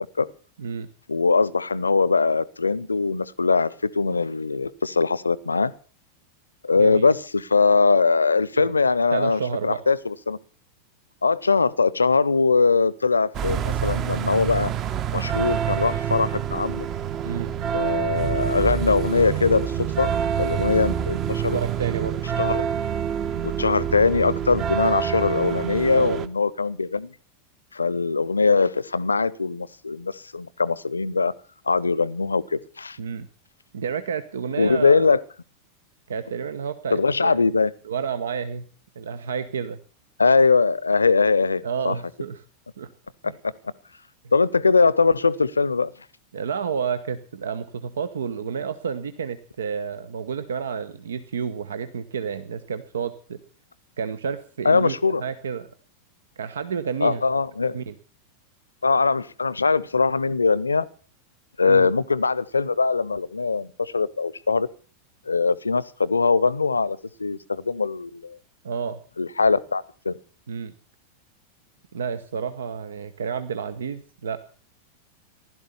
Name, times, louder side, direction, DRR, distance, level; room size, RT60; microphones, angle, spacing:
voice 1, 1.1-5.7 6.6-10.4 11.2-14.7 15.1-16.9 17.7-20.1 20.4-21.6 22.4-22.7 23.4-27.1 27.7-31.3 31.7-33.0 34.6-35.2 36.9-37.7 40.2-41.9 44.3-45.9 54.6-55.2 57.0-57.8 58.8-60.9 61.6-64.7 65.3-68.4 69.2-70.1, left 4 dB, 80° left, 22 dB, 0.7 m, -21 dB
voice 2, 9.1-9.8 17.2-17.5 21.5-22.2 25.9-26.2 33.0-33.3 33.7-35.1 36.1-37.4 37.8-38.7 39.0-39.8 41.6-42.4 42.8-42.9 43.2-43.4 46.3-53.4 54.0-55.7 56.4-57.2 57.6-57.9 61.7-61.9 68.6-69.0 70.5-70.7 71.9-74.4, right 6 dB, 65° right, 12 dB, 0.9 m, -30 dB
sound 1, 13.3-26.3, right 9 dB, 35° right, 1.1 m, -27 dB
15.5 x 12.0 x 6.9 m, 0.42 s
figure-of-eight pair, 90°, 0 cm